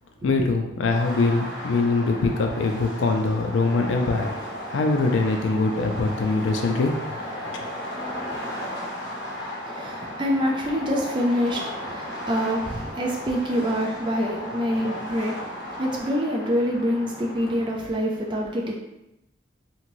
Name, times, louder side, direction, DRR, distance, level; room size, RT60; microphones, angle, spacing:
voice 1, 0.2-4.3 4.7-6.9, left 3 dB, 90° left, 4 dB, 0.4 m, -23 dB
sound 1, 0.9-17.7, left 1 dB, 60° left, 0.9 m, -35 dB
voice 2, 9.6-18.7, equal, 25° right, -1 dB, 0.4 m, -26 dB
3.0 x 2.8 x 2.6 m, 0.89 s
head